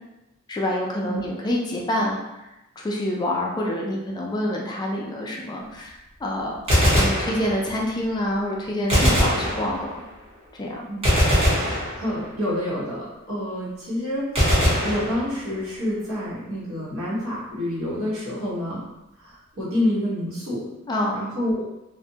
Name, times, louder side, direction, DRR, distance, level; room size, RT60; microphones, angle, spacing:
voice 1, 0.5-2.4 2.8-6.6 6.9-9.9 10.5-10.8 20.9-21.2, left 1 dB, 20° left, -2 dB, 0.3 m, -27 dB
Gunshot gunfire, 6.5-7.9 8.9-10.1 11.0-12.5 14.4-15.7, equal, 30° right, 0.8 m, -21 dB
voice 2, 11.4-18.8 19.2-20.6 21.1-21.7, left 1 dB, 75° right, -9 dB, 1.1 m, -28 dB
2.4 x 2.1 x 2.7 m, 0.95 s
head